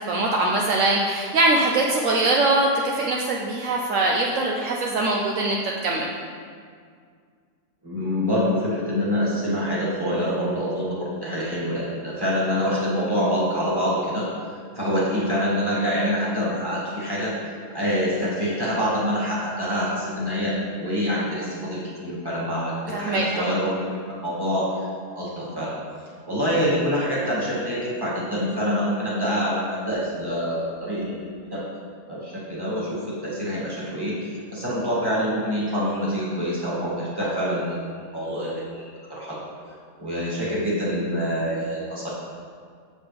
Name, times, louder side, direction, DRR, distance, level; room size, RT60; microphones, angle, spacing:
voice 1, 0.1-6.1 22.9-23.5, right 2 dB, 70° right, -1 dB, 1.0 m, -22 dB
voice 2, 7.8-14.3 14.8-17.3 17.7-24.9 25.1-25.8 26.3-31.1 31.5-31.7 32.1-37.8 38.1-39.4 40.0-42.1, equal, 15° right, -7 dB, 2.0 m, -26 dB
7.7 x 7.3 x 3.4 m, 2.1 s
omnidirectional pair, 1.4 m